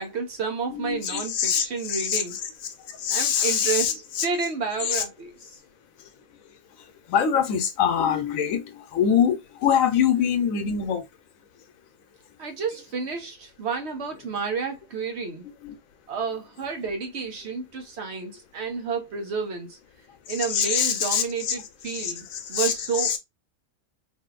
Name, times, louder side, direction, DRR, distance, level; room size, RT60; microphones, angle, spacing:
voice 1, 0.0-2.4 3.1-5.6 12.4-15.5 16.1-19.8 20.3-23.2, right 5 dB, 60° right, 1.0 m, -30 dB
voice 2, 0.7-2.2 3.0-3.9 4.9-5.0 7.1-11.0 15.6-15.7 20.5-21.5 22.0-22.1 22.5-23.2, left 8 dB, 90° left, 1.1 m, -24 dB
3.4 x 2.7 x 2.3 m
omnidirectional pair, 1.4 m